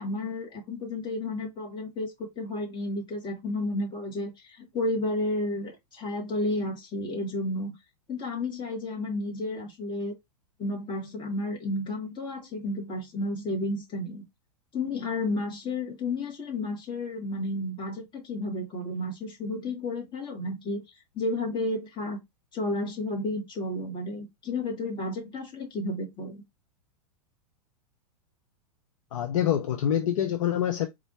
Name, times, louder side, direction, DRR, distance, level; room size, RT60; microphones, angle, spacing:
voice 1, 0.0-7.7 8.1-10.1 10.6-14.2 14.7-20.8 21.1-22.2 22.5-26.4, left 2 dB, 25° left, 1.6 m, -32 dB
voice 2, 29.1-30.9, left 10 dB, 55° left, 0.6 m, -26 dB
3.9 x 2.6 x 3.0 m
figure-of-eight pair, 100°, 20 cm